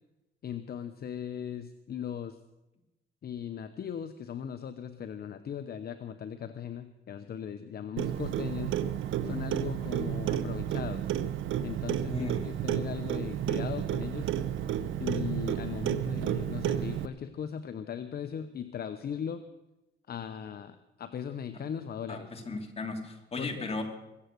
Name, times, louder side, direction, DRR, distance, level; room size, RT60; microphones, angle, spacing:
voice 1, 0.4-2.4 3.2-8.8 9.2-11.1 11.6-14.3 15.0-19.4 20.1-22.3 23.4-23.6, left 8 dB, 50° left, 10 dB, 0.8 m, -38 dB
Clock, 8.0-17.1, right 10 dB, 75° right, 0.8 m, -31 dB
voice 2, 12.1-12.5 22.1-23.8, left 3 dB, 30° left, 3 dB, 2.9 m, -36 dB
23.0 x 7.9 x 6.8 m, 0.98 s
cardioid pair, 90°, 20 cm